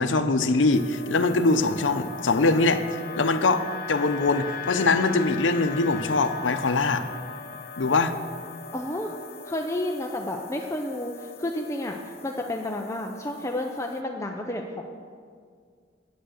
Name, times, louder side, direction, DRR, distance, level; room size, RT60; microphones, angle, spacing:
voice 1, 0.0-7.1 7.8-8.1, left 3 dB, 85° left, 9 dB, 0.7 m, -23 dB
sound 1, 0.7-14.0, left 6 dB, 55° left, 0.6 m, -40 dB
voice 2, 8.7-9.1 9.5-14.8, left 1 dB, 15° left, 1 dB, 0.6 m, -31 dB
10.5 x 9.0 x 6.5 m, 2.1 s
head